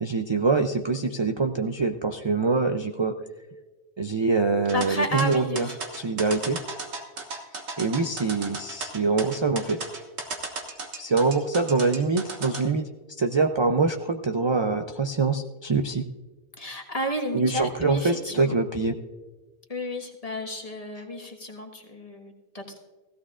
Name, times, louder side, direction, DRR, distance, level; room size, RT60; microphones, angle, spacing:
voice 1, 0.0-3.1 4.0-5.7 5.9-6.6 7.8-9.8 11.0-12.9 13.2-16.0 17.3-19.0, right 4 dB, 35° right, 6 dB, 0.4 m, -24 dB
voice 2, 4.7-5.8 16.6-18.6 19.7-22.8, equal, 35° left, 2 dB, 1.6 m, -32 dB
sound 1, 4.7-12.6, right 3 dB, 90° right, 1.7 m, -35 dB
17.0 x 15.5 x 2.4 m, 1.2 s
omnidirectional pair, 1.1 m